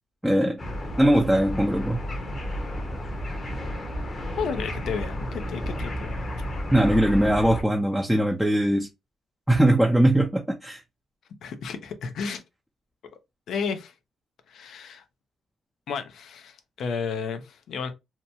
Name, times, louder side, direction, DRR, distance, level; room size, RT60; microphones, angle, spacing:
voice 1, 0.2-0.6 1.0-2.0 6.7-8.9 9.5-10.8, right 1 dB, ahead, 0.5 m, -21 dB
sound 1, 0.6-7.6, equal, 35° left, 0.8 m, -32 dB
voice 2, 4.4-6.2 11.4-12.4 13.5-13.9 14.5-15.0 15.9-17.9, left 5 dB, 70° left, 0.5 m, -32 dB
2.8 x 2.2 x 2.6 m
cardioid pair, 90°, 0 cm